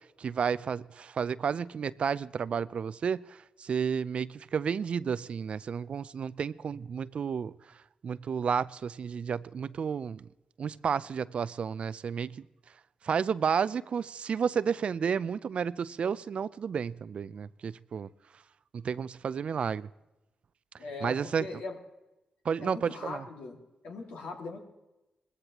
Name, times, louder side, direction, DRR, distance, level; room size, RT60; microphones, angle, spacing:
voice 1, 0.2-7.5 8.0-10.3 10.6-12.4 13.0-18.1 18.7-19.9 21.0-21.6 22.4-23.3, right 6 dB, 60° right, 0.4 m, -31 dB
voice 2, 20.8-21.8 22.6-23.6 23.8-24.6, left 3 dB, 80° left, 2.1 m, -40 dB
20.0 x 15.0 x 2.9 m
supercardioid pair, 55°, 2 cm